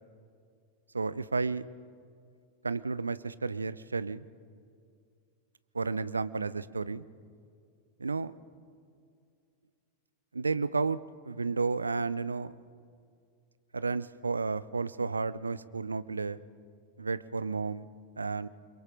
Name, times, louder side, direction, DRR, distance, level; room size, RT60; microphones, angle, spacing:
voice 1, 0.9-1.6 2.6-4.2 5.7-7.0 8.0-8.3 10.3-11.0 11.2-12.5 13.7-16.4 17.0-17.9 18.2-18.5, right 4 dB, 80° right, 16 dB, 0.6 m, -32 dB
29.0 x 22.5 x 5.0 m, 2.2 s
figure-of-eight pair, 90°, 0 cm